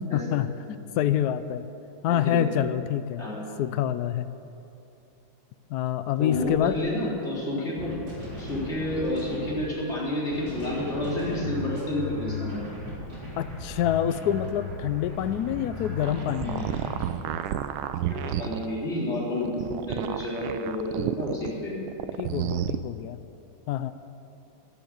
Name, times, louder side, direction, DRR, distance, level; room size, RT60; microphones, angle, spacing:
voice 1, 0.0-1.7 2.0-3.3 3.6-4.3 5.7-6.8 13.4-16.7 22.2-23.2 23.7-23.9, left 10 dB, 80° left, 12 dB, 0.9 m, -27 dB
voice 2, 2.1-2.4 3.2-3.4 6.2-7.9 8.4-12.6 18.1-21.7, left 1 dB, 30° left, -7 dB, 4.1 m, -30 dB
sound 1, 6.2-6.6 7.8-9.6 10.3-17.0, left 2 dB, 50° right, 4.4 m, -37 dB
sound 2, 15.9-18.7 19.3-21.5 21.9-22.8, right 11 dB, 85° right, 1.4 m, -30 dB
11.5 x 11.0 x 7.9 m, 2.8 s
omnidirectional pair, 2.2 m